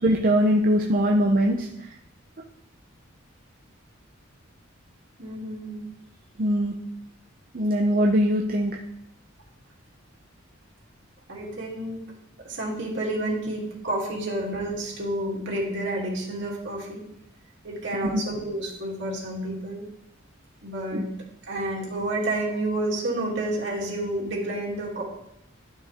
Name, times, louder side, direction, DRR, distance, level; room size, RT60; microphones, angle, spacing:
voice 1, 0.0-1.9 6.4-6.8 7.5-8.8 18.0-18.2 20.9-21.0, equal, 45° right, 1 dB, 0.7 m, -22 dB
voice 2, 5.2-5.8 11.3-12.0 12.4-17.0 17.6-19.8 20.6-21.1 21.5-25.0, right 1 dB, 65° right, -3 dB, 2.8 m, -30 dB
12.0 x 6.5 x 3.6 m, 0.79 s
head